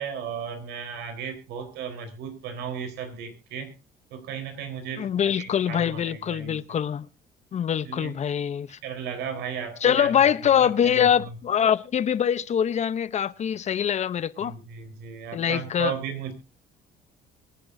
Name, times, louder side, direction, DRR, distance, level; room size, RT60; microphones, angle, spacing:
voice 1, 0.0-3.7 4.1-6.6 7.9-8.1 8.8-10.1 14.4-16.3, right 7 dB, 80° right, 4.0 m, -35 dB
voice 2, 5.0-7.1 7.5-8.8 9.8-14.5 15.3-15.9, left 9 dB, 40° left, 0.8 m, -24 dB
23.5 x 10.5 x 2.7 m
cardioid pair, 110°, 17 cm